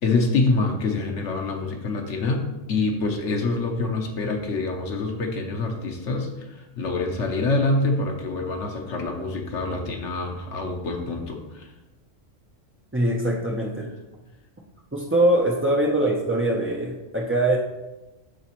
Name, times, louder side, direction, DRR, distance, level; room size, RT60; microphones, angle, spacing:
voice 1, 0.0-11.7, left 3 dB, 70° left, 3 dB, 1.2 m, -26 dB
voice 2, 12.9-13.9 14.9-17.6, right 1 dB, 20° right, -3 dB, 0.3 m, -22 dB
11.5 x 4.1 x 3.0 m, 1.1 s
omnidirectional pair, 1.3 m